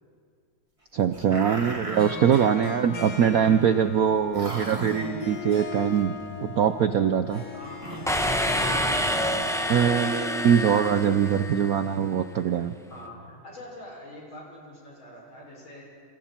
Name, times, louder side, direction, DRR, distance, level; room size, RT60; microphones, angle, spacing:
voice 1, 0.9-6.1 6.4-7.4 9.7-12.7, right 8 dB, 65° right, 9 dB, 0.9 m, -22 dB
sound 1, 1.1-3.7 4.0-4.1 4.3-5.4 6.0-10.2, right 2 dB, 15° right, 2.5 m, -39 dB
Harp, 1.8-12.2, left 6 dB, 50° left, 2.9 m, -41 dB
voice 2, 7.5-8.0 8.6-9.4 12.9-15.8, left 1 dB, 70° left, -3 dB, 6.9 m, -43 dB
sound 2, 8.1-11.8, equal, ahead, 0.8 m, -27 dB
29.0 x 28.0 x 4.4 m, 2.2 s
omnidirectional pair, 2.3 m